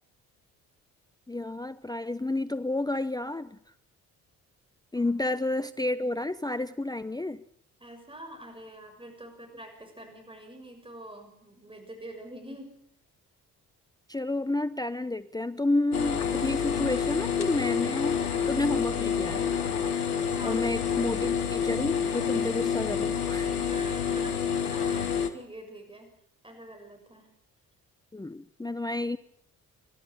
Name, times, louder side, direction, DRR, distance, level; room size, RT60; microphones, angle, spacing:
voice 1, 1.3-3.6 4.9-7.4 14.1-18.2 18.5-19.5 20.4-23.5 28.1-29.2, left 2 dB, 10° left, 13 dB, 0.9 m, -30 dB
voice 2, 7.8-12.7 20.3-20.6 23.5-26.1 26.4-27.3, right 1 dB, 10° right, 4 dB, 6.7 m, -46 dB
sound 1, 15.9-25.3, left 7 dB, 90° left, 1.2 m, -28 dB
29.0 x 12.5 x 8.8 m, 0.72 s
figure-of-eight pair, 45°, 44 cm